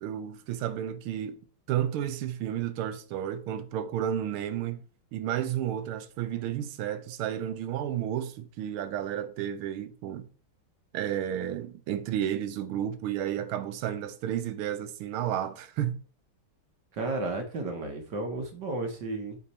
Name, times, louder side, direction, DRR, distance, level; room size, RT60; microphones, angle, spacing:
voice 1, 0.0-1.4 1.7-4.8 5.1-10.3 10.9-16.0, right 10 dB, 80° right, 1.5 m, -32 dB
voice 2, 16.9-19.4, right 2 dB, 60° right, 1.6 m, -33 dB
8.1 x 4.0 x 4.2 m
omnidirectional pair, 2.3 m